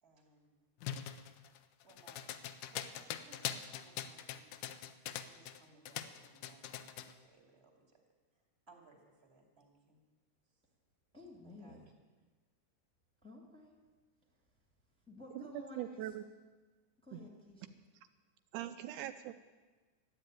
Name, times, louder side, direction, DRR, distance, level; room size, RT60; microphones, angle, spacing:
voice 1, 0.0-0.6 1.8-4.7 5.2-8.0 8.7-10.0 11.4-11.8, right 3 dB, 20° right, 2 dB, 2.4 m, -64 dB
sound 1, 0.8-5.6 5.9-7.1, left 10 dB, 90° left, 2.3 m, -42 dB
voice 2, 11.1-11.8 13.2-13.8 14.3-14.4 15.1-16.1 17.0-17.8, left 2 dB, ahead, -2 dB, 2.0 m, -53 dB
voice 3, 15.8-16.2 17.1-17.2 18.5-19.3, right 12 dB, 80° right, 9 dB, 2.0 m, -41 dB
13.0 x 9.8 x 9.2 m, 1.3 s
omnidirectional pair, 3.6 m